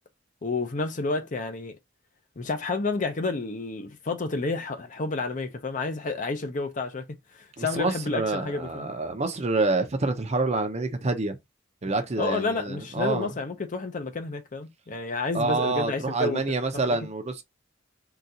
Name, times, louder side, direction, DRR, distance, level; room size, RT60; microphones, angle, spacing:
voice 1, 0.4-1.8 2.4-7.1 7.3-8.9 12.2-16.4 16.7-17.0, left 3 dB, 40° left, 0.6 m, -30 dB
voice 2, 7.6-11.4 11.8-13.3 15.3-17.4, right 3 dB, 35° right, 0.6 m, -27 dB
3.8 x 2.4 x 2.8 m
head